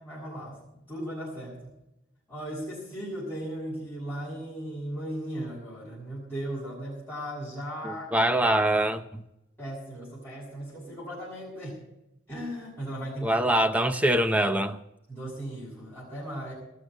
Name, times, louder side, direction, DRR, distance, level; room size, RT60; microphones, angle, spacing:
voice 1, 0.0-1.7 2.3-8.1 9.6-11.8 12.3-13.4 15.1-16.5, right 1 dB, 10° left, -10 dB, 7.0 m, -37 dB
voice 2, 7.8-9.2 13.2-14.8, right 1 dB, 5° right, 10 dB, 0.7 m, -24 dB
20.0 x 6.8 x 8.8 m, 0.88 s
head